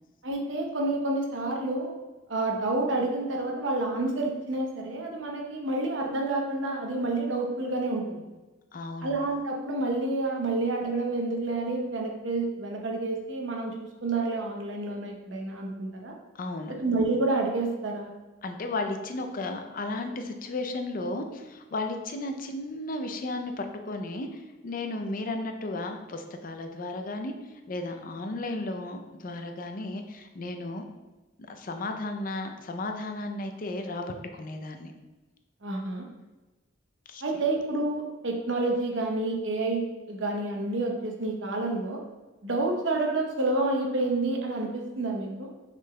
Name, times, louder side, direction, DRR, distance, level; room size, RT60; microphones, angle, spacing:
voice 1, 0.2-1.9 2.3-8.2 9.0-16.1 16.8-18.1 35.6-36.1 37.2-42.0 42.4-45.5, right 2 dB, 80° right, 1 dB, 0.9 m, -29 dB
voice 2, 8.7-9.2 16.4-16.7 18.4-27.3 27.7-30.8 31.5-34.9 37.1-37.2, left 2 dB, 45° left, 5 dB, 0.5 m, -34 dB
6.3 x 3.8 x 2.2 m, 1.2 s
head